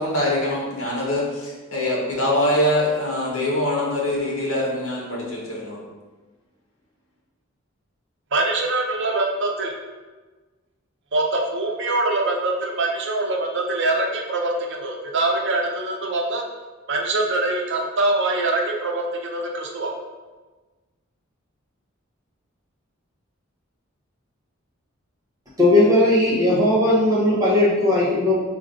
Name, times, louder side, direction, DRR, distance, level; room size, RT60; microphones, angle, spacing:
voice 1, 0.0-5.8, left 1 dB, 75° left, -4 dB, 1.3 m, -23 dB
voice 2, 8.3-9.7 11.1-16.4 16.9-19.9, right 2 dB, 60° right, 0 dB, 0.7 m, -23 dB
voice 3, 25.6-28.4, left 1 dB, 15° right, -7 dB, 1.2 m, -17 dB
3.8 x 3.1 x 3.9 m, 1.3 s
head